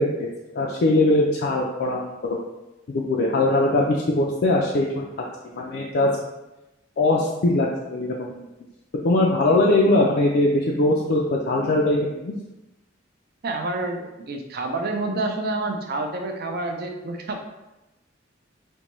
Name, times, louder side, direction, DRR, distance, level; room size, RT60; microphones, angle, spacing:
voice 1, 0.0-2.4 2.9-5.1 5.5-6.1 7.0-8.5 9.0-12.0 12.2-12.3, left 2 dB, 55° left, -2 dB, 0.4 m, -21 dB
voice 2, 13.4-17.4, right 2 dB, 50° right, 4 dB, 0.5 m, -28 dB
5.1 x 2.2 x 3.0 m, 0.99 s
head